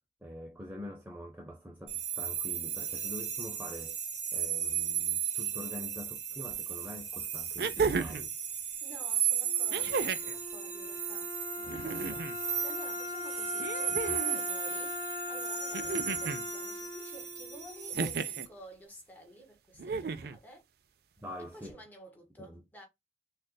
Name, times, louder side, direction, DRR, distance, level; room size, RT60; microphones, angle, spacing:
voice 1, 0.2-4.0 4.3-8.3 21.2-21.8 22.4-22.6, left 1 dB, 10° right, 0.6 m, -45 dB
sound 1, 1.9-18.4, right 9 dB, 40° right, 0.9 m, -35 dB
sound 2, 6.5-6.6 7.6-8.3 9.7-10.4 11.6-12.4 13.6-14.4 15.7-16.4 17.9-18.5 19.8-20.4 21.7-21.8, right 4 dB, 60° right, 0.4 m, -33 dB
voice 2, 8.8-20.6 21.4-22.8, right 1 dB, 10° left, 1.3 m, -52 dB
Wind instrument woodwind instrument, 9.4-18.5, left 2 dB, 35° left, 1.2 m, -41 dB
6.4 x 2.4 x 2.2 m
head